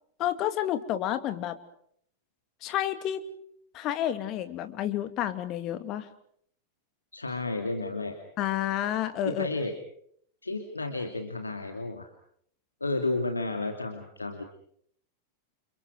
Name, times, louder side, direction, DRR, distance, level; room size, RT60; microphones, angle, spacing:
voice 1, 0.2-1.6 2.6-3.2 3.7-6.1 8.4-9.5, left 11 dB, 35° left, 9 dB, 2.7 m, -30 dB
voice 2, 7.1-8.1 9.2-9.7 10.4-12.1 12.8-14.4, left 2 dB, 80° left, 5 dB, 2.6 m, -32 dB
30.0 x 28.5 x 4.9 m, 0.66 s
figure-of-eight pair, 90°, 0 cm